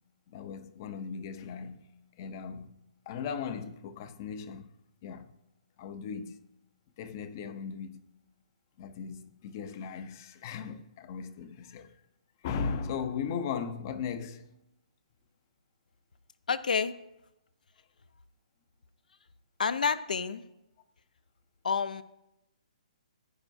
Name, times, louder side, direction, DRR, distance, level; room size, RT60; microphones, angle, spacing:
voice 1, 0.3-1.9 2.2-2.7 3.1-4.7 5.0-5.3 5.8-6.4 7.0-8.2 8.8-12.0 12.4-14.5, left 6 dB, 25° left, 0.6 m, -37 dB
voice 2, 16.5-16.9 19.6-20.4 21.6-22.0, left 6 dB, 80° left, 0.6 m, -28 dB
16.5 x 9.7 x 2.6 m
hypercardioid pair, 175°, 4 cm